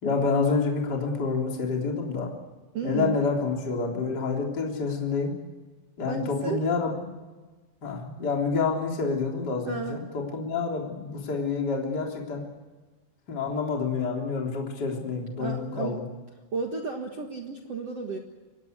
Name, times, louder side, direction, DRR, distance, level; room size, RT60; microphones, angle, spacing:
voice 1, 0.0-2.3 2.8-5.3 6.0-7.1 7.8-12.5 13.3-16.0, left 4 dB, 25° left, 0 dB, 3.3 m, -28 dB
voice 2, 2.7-3.2 6.1-6.6 9.6-10.0 15.4-16.0 16.5-18.2, right 5 dB, 60° right, 3 dB, 1.6 m, -33 dB
24.5 x 19.5 x 8.2 m, 1.3 s
omnidirectional pair, 5.3 m